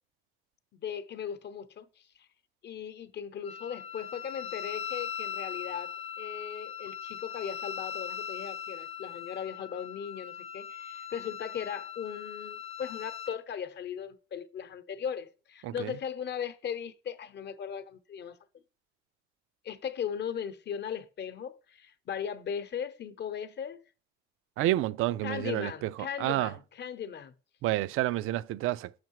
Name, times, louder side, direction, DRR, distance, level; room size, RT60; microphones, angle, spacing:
voice 1, 0.7-2.3 2.6-18.4 19.6-23.8 25.2-27.3, left 8 dB, 55° left, 0.8 m, -38 dB
Wind instrument woodwind instrument, 3.4-13.4, left 8 dB, 30° left, 0.4 m, -40 dB
voice 2, 15.6-16.0 24.6-26.6 27.6-29.0, right 15 dB, 85° right, 0.4 m, -30 dB
6.1 x 5.6 x 4.6 m
cardioid pair, 100°, 21 cm